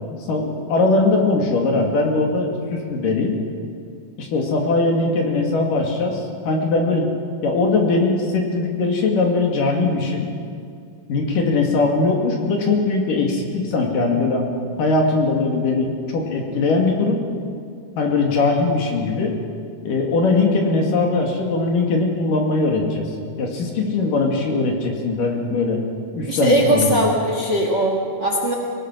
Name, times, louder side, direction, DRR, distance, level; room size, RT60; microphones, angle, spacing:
voice 1, 0.3-3.4 4.2-7.1 7.4-10.3 11.1-14.5 14.8-17.2 18.0-19.4 19.8-23.0 23.4-25.8 26.1-27.1, left 3 dB, 60° left, 1 dB, 3.6 m, -20 dB
voice 2, 26.3-28.5, right 1 dB, 45° right, 1 dB, 1.5 m, -20 dB
25.0 x 18.5 x 6.2 m, 2.3 s
omnidirectional pair, 4.5 m